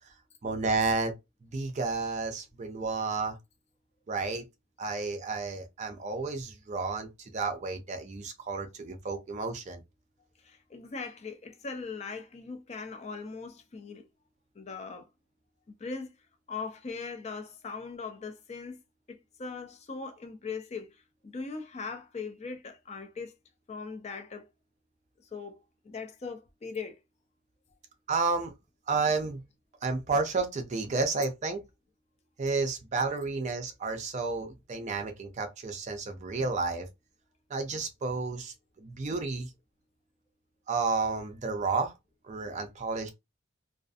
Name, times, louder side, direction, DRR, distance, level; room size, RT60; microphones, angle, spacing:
voice 1, 0.4-1.1 1.5-3.4 4.1-4.4 4.8-9.8 28.1-28.5 28.9-29.4 29.8-31.6 32.4-36.9 37.5-39.5 40.7-41.9 42.3-43.1, right 4 dB, 35° right, 0.4 m, -31 dB
voice 2, 10.4-14.0 14.6-15.1 15.8-16.2 16.5-18.8 19.1-23.3 23.7-24.5 25.3-25.6 25.8-26.9 42.5-42.6, left 4 dB, 30° left, 0.4 m, -40 dB
2.4 x 2.4 x 2.4 m
head